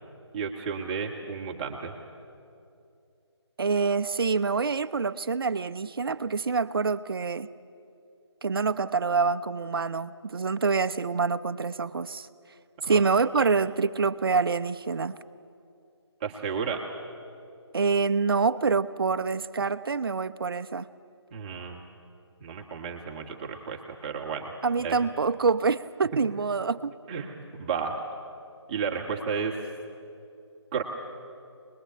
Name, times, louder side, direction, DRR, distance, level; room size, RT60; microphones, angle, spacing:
voice 1, 0.3-1.9 12.8-13.0 16.2-16.8 21.3-21.8 22.4-24.5 24.8-25.0 27.1-28.0 28.7-29.6 30.7-30.8, right 6 dB, 20° right, 0 dB, 1.7 m, -32 dB
voice 2, 3.6-7.5 8.4-12.3 12.9-15.2 17.7-20.9 24.6-26.9, right 4 dB, 50° right, 11 dB, 0.8 m, -26 dB
25.0 x 21.0 x 8.6 m, 2.5 s
figure-of-eight pair, 155°, 15 cm